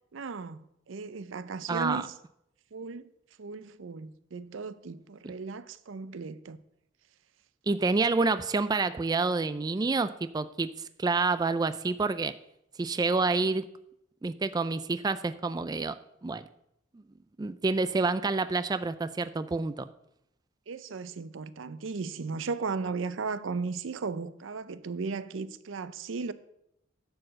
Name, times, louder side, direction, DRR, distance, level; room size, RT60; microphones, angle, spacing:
voice 1, 0.1-2.1 2.7-3.1 3.4-6.6 20.7-26.3, right 4 dB, 85° right, 0.5 m, -36 dB
voice 2, 1.7-2.0 7.7-10.7 11.0-12.3 12.8-13.7 14.2-16.0 16.2-16.4 17.4-19.9, right 3 dB, 20° right, 0.3 m, -28 dB
10.5 x 4.7 x 7.5 m
head